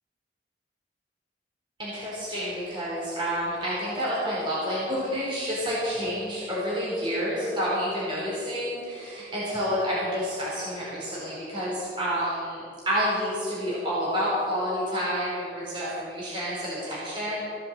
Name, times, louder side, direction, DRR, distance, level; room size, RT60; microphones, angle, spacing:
voice 1, 1.8-17.4, equal, 30° right, -8 dB, 4.4 m, -29 dB
17.0 x 7.7 x 7.7 m, 2.4 s
head